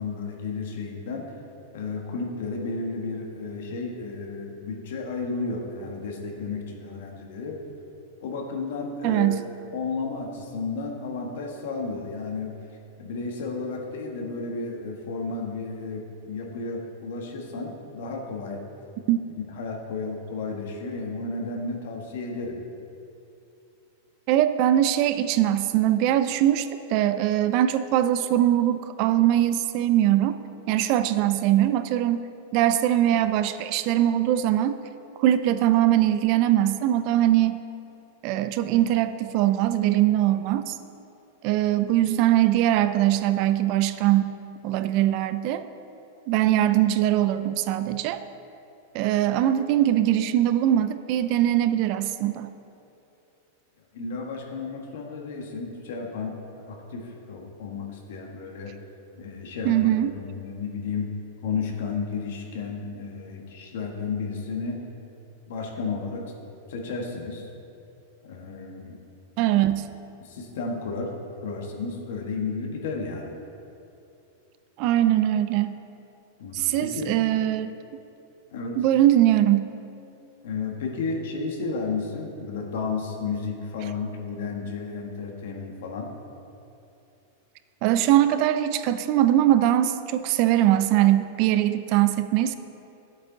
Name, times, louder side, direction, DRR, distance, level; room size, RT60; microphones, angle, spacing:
voice 1, 0.0-1.3 1.7-7.6 8.2-9.4 9.7-12.6 13.0-18.6 19.5-22.6 53.9-58.8 59.2-61.1 61.4-64.8 65.5-66.3 66.7-67.4 68.2-69.0 70.2-71.1 71.4-73.4 76.4-77.1 78.5-78.8 80.4-86.1, left 4 dB, 60° left, 1 dB, 1.4 m, -32 dB
voice 2, 9.0-9.4 19.1-19.2 24.3-30.4 30.7-32.3 32.5-34.8 35.2-37.6 38.2-40.7 41.4-44.4 44.6-45.7 46.3-48.2 48.9-52.5 59.6-60.1 69.4-69.9 74.8-75.7 76.5-77.7 78.8-79.7 87.8-92.6, right 12 dB, 35° right, 11 dB, 0.3 m, -21 dB
11.0 x 8.0 x 3.9 m, 2.8 s
supercardioid pair, 175°, 0 cm